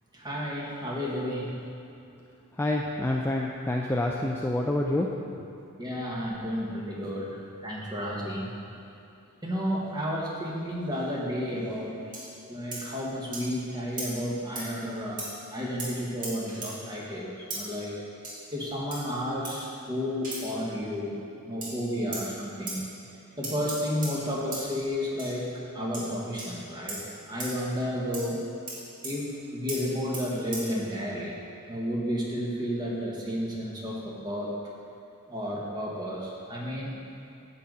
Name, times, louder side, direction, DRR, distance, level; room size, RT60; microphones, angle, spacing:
voice 1, 0.1-1.6 5.8-7.4 7.6-8.5 9.4-12.0 12.5-18.0 18.5-21.2 21.4-22.8 23.4-27.0 27.3-28.4 29.0-31.4 31.7-34.5 35.3-37.0, equal, 20° right, -4 dB, 1.3 m, -32 dB
voice 2, 2.6-5.1 5.4-5.5, left 1 dB, 10° left, -1 dB, 0.3 m, -27 dB
sound 1, 12.1-12.3 12.7-12.8 13.3-13.4 14.0-14.1 14.5-14.7 15.2-15.3 15.8-15.9 16.2-16.7 17.5-17.6 18.2-18.4 18.9-19.1 19.4-19.6 20.2-20.4 21.6-21.7 22.1-22.2 22.7-22.8 23.4-24.1 24.5-24.6 25.2-25.3 25.9-26.1 26.4-26.5 26.9-27.0 27.4-27.5 28.1-28.3 28.7-28.8 29.0-29.1 29.7-29.8 30.1-30.2 30.5-30.6, right 2 dB, 35° right, 2.1 m, -36 dB
9.8 x 4.0 x 7.5 m, 2.7 s
head